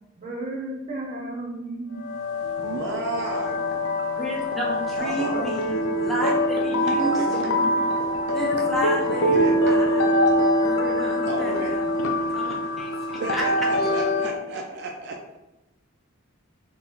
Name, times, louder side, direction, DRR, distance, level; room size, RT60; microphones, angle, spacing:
voice 1, 0.2-2.0 5.3-5.4, right 2 dB, 35° right, -2 dB, 0.7 m, -33 dB
sound 1, 2.0-14.3, left 1 dB, 85° left, 0.4 m, -24 dB
voice 2, 2.6-3.7 5.0-5.4 7.0-7.6 9.3-9.6 11.3-11.7 13.2-15.2, right 2 dB, 55° right, 1 dB, 0.3 m, -32 dB
voice 3, 4.2-7.7 8.3-10.1 10.6-11.9 12.3-13.5 13.8-14.1, right 1 dB, ahead, -5 dB, 0.5 m, -31 dB
3.8 x 2.2 x 2.9 m, 1.0 s
head